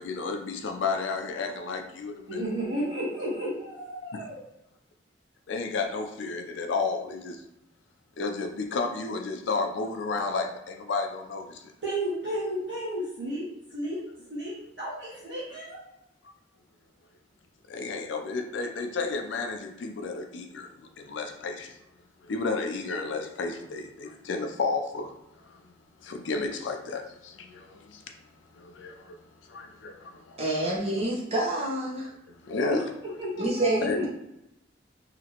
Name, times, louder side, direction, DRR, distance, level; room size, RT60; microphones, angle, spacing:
voice 1, 0.0-2.4 4.1-4.3 5.5-7.4 8.2-11.6 17.7-21.8 22.2-25.1 25.5-25.6 26.0-28.0 28.6-29.2 29.5-30.6 32.4-32.9 33.8-34.0, left 4 dB, 80° left, 5 dB, 0.4 m, -32 dB
voice 2, 2.3-4.4 11.8-14.0 14.3-15.8 33.2-34.1, right 1 dB, 70° right, -9 dB, 1.2 m, -33 dB
voice 3, 30.4-32.1 33.4-34.1, right 1 dB, 35° right, -4 dB, 0.7 m, -27 dB
2.9 x 2.5 x 2.8 m, 0.85 s
head